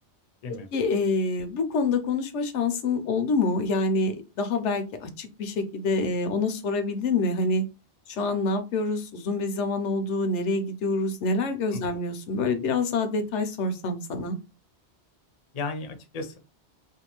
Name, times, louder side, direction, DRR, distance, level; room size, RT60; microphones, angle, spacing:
voice 1, 0.7-7.7 8.1-14.4, left 3 dB, 90° left, 8 dB, 0.9 m, -26 dB
voice 2, 15.5-16.4, left 3 dB, 45° left, 7 dB, 0.5 m, -35 dB
2.6 x 2.3 x 2.9 m, 0.29 s
omnidirectional pair, 1.2 m